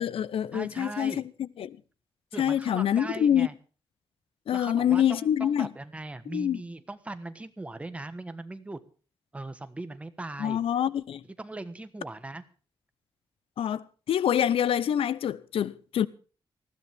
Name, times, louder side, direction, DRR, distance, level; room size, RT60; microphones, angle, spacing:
voice 1, 0.0-1.8 2.4-3.5 4.5-5.7 6.3-6.6 10.4-11.2 13.6-16.1, left 10 dB, 90° left, 0.8 m, -26 dB
voice 2, 0.5-1.2 2.3-3.5 4.5-8.8 9.3-10.6 11.4-12.4, right 2 dB, 15° right, 1.3 m, -39 dB
20.0 x 15.5 x 3.5 m
wide cardioid pair, 165°, 9 cm